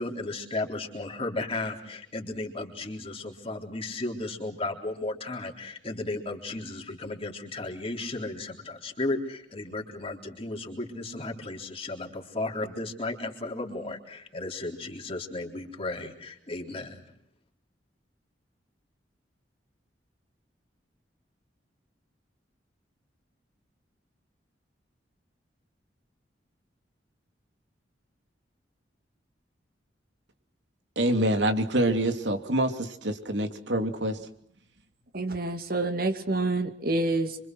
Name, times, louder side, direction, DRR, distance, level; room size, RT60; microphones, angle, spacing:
voice 1, 0.0-17.0, left 2 dB, 35° left, 3.7 m, -34 dB
voice 2, 31.0-34.2, right 1 dB, 80° right, 2.8 m, -26 dB
voice 3, 35.1-37.4, right 2 dB, 55° right, 2.3 m, -27 dB
26.5 x 25.5 x 6.2 m
head